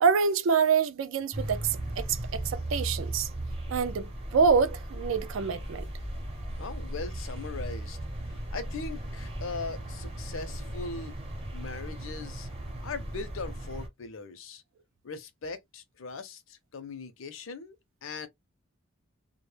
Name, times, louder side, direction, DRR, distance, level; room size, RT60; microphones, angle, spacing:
voice 1, 0.0-3.3 3.7-5.9, right 5 dB, 65° right, 0.3 m, -26 dB
sound 1, 1.3-13.9, right 1 dB, 25° right, 0.7 m, -37 dB
voice 2, 6.6-8.0 8.3-11.1 11.5-12.5 12.8-14.6 15.0-17.8 18.0-18.3, left 4 dB, 70° left, 0.6 m, -40 dB
2.1 x 2.0 x 3.1 m
head